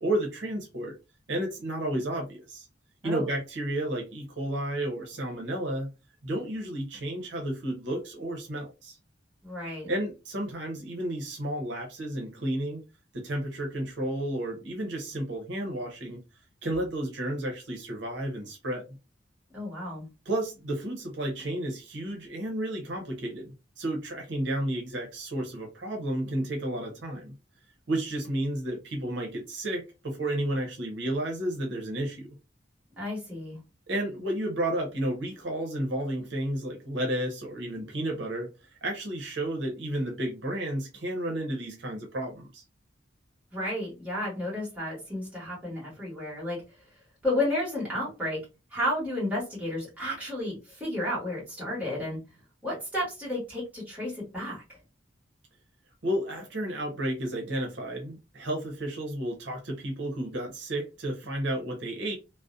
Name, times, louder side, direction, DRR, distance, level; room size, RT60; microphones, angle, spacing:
voice 1, 0.0-0.9 1.3-2.7 3.0-5.9 6.2-9.0 9.9-12.8 13.1-16.2 16.6-18.8 20.3-23.5 23.8-27.3 27.9-32.3 33.9-38.5 38.8-42.6 56.0-62.2, right 1 dB, 70° right, 1 dB, 0.7 m, -32 dB
voice 2, 3.0-3.3 9.4-9.9 19.5-20.1 33.0-33.6 43.5-46.6 47.2-48.4 48.7-52.2 52.6-54.6, left 1 dB, 10° right, -6 dB, 1.2 m, -32 dB
2.5 x 2.0 x 2.4 m, 0.28 s
head